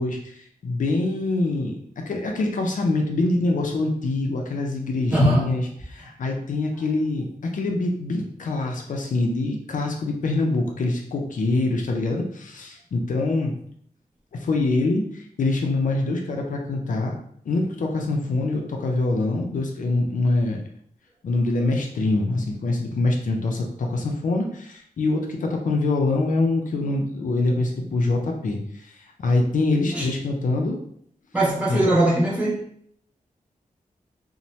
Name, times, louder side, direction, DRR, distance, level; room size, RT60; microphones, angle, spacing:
voice 1, 0.0-13.5 14.3-17.1 17.4-20.6 21.2-30.8 31.7-31.9, left 2 dB, 70° left, 1 dB, 0.5 m, -24 dB
voice 2, 5.1-5.5 29.9-30.1 31.3-32.7, right 1 dB, 10° right, -7 dB, 0.9 m, -20 dB
2.7 x 2.1 x 3.0 m, 0.64 s
wide cardioid pair, 130°, 14 cm